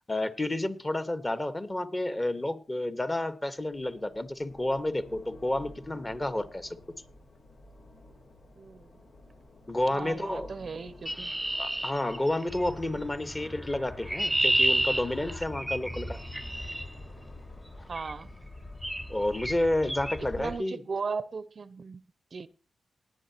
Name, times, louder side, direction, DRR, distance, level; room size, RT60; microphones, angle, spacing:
voice 1, 0.1-6.8 9.7-10.5 11.6-16.2 19.1-20.8, left 1 dB, 25° left, 1.5 m, -30 dB
sound 1, 3.6-19.2, left 1 dB, 80° left, 3.2 m, -53 dB
voice 2, 8.6-9.0 9.9-11.3 17.9-18.3 20.4-22.0 22.3-22.5, right 5 dB, 55° right, 0.6 m, -37 dB
Chirp tweet, 11.1-12.7 13.7-16.9 18.0-18.2 18.8-19.1 19.3-19.6 19.9-20.2, right 1 dB, 5° right, 0.5 m, -30 dB
sound 2, 12.5-20.6, left 2 dB, 55° left, 3.1 m, -44 dB
19.0 x 10.5 x 3.0 m
cardioid pair, 65°, 0 cm